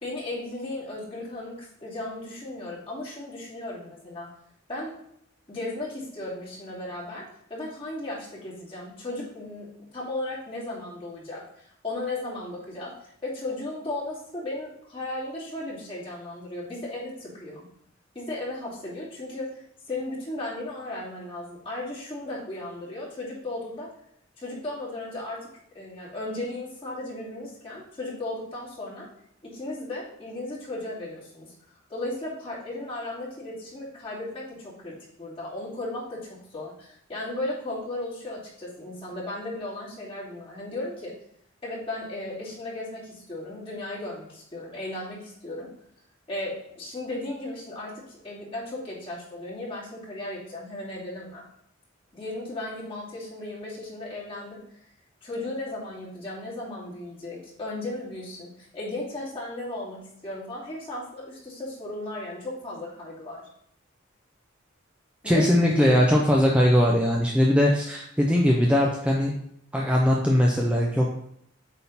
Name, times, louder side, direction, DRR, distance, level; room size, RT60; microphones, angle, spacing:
voice 1, 0.0-4.3 4.7-4.9 5.5-7.2 7.5-9.7 9.9-17.6 18.1-23.9 24.4-25.4 25.7-29.1 29.4-31.5 31.9-41.1 41.6-45.7 46.3-51.4 52.1-54.6 55.2-63.5 65.2-65.5 65.7-66.0, left 2 dB, 30° left, -8 dB, 2.8 m, -35 dB
voice 2, 65.2-69.3 69.7-71.1, equal, 5° right, -2 dB, 0.7 m, -20 dB
8.3 x 3.8 x 4.2 m, 0.71 s
head